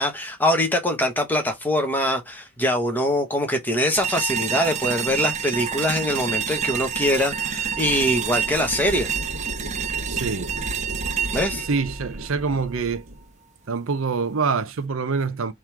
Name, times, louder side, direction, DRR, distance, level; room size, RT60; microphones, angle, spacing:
voice 1, 0.0-9.2 11.3-11.7, equal, 10° left, 1.1 m, -23 dB
sound 1, 4.0-13.0, right 7 dB, 35° right, 0.7 m, -28 dB
sound 2, 5.3-13.3, equal, 85° right, 1.5 m, -37 dB
voice 2, 10.1-10.5 11.7-13.0 13.7-15.5, right 4 dB, 65° right, 0.6 m, -25 dB
3.7 x 3.1 x 4.5 m
head